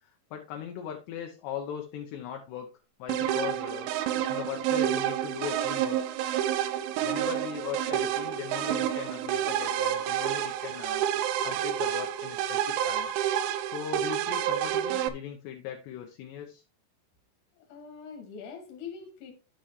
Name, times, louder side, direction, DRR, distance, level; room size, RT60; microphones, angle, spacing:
voice 1, 0.0-2.7 3.0-3.9 4.3-6.0 7.0-11.1 11.4-13.1 13.6-16.6, left 9 dB, 75° left, 2.6 m, -39 dB
sound 1, 3.1-15.1, right 11 dB, 80° right, 2.7 m, -29 dB
voice 2, 17.5-19.3, left 6 dB, 50° left, 2.8 m, -43 dB
10.0 x 7.6 x 3.2 m
omnidirectional pair, 5.9 m